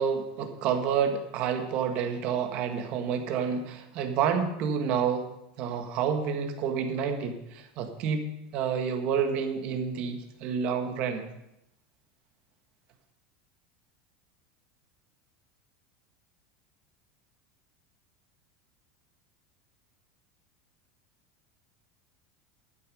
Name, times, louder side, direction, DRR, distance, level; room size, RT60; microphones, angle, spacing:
voice 1, 0.0-5.2 5.6-8.2 8.5-11.2, right 7 dB, 50° right, 6 dB, 1.7 m, -29 dB
11.5 x 9.3 x 5.0 m, 0.84 s
supercardioid pair, 140°, 3 cm